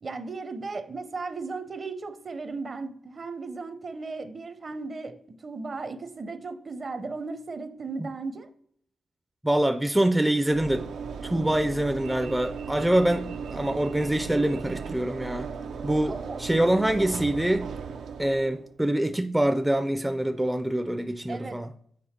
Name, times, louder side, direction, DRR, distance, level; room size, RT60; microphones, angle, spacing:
voice 1, 0.0-5.2 5.4-8.5 16.0-16.4 21.3-21.6, right 3 dB, 45° right, 0.6 m, -36 dB
voice 2, 9.4-10.8 11.2-15.5 15.8-17.7 18.2-21.7, right 1 dB, 10° right, 0.4 m, -25 dB
Train / Engine / Alarm, 10.5-18.7, right 6 dB, 90° right, 0.4 m, -36 dB
7.5 x 4.5 x 4.3 m
cardioid pair, 80°, 0 cm